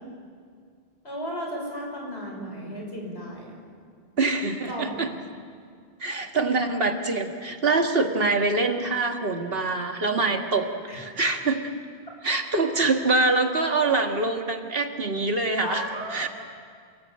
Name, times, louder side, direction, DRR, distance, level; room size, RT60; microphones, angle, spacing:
voice 1, 1.0-3.6 4.7-4.9 10.9-11.0 15.6-16.3, equal, 80° left, 0 dB, 6.7 m, -34 dB
voice 2, 4.2-5.1 6.0-11.6 12.2-15.8 16.1-16.3, right 3 dB, 65° right, 4 dB, 2.2 m, -24 dB
28.5 x 20.0 x 8.8 m, 2.1 s
omnidirectional pair, 1.1 m